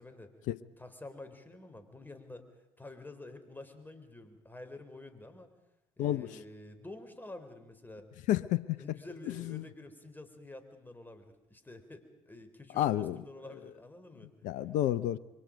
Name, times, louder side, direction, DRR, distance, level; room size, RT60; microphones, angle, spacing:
voice 1, 0.0-0.3 0.8-2.5 2.8-5.5 6.0-8.1 8.8-14.3, left 2 dB, 15° left, 8 dB, 4.1 m, -49 dB
voice 2, 8.3-8.8 9.4-9.6 12.8-13.2 14.4-15.2, left 13 dB, 65° left, 16 dB, 0.7 m, -30 dB
27.0 x 23.5 x 5.2 m, 0.99 s
hypercardioid pair, 55°, 14 cm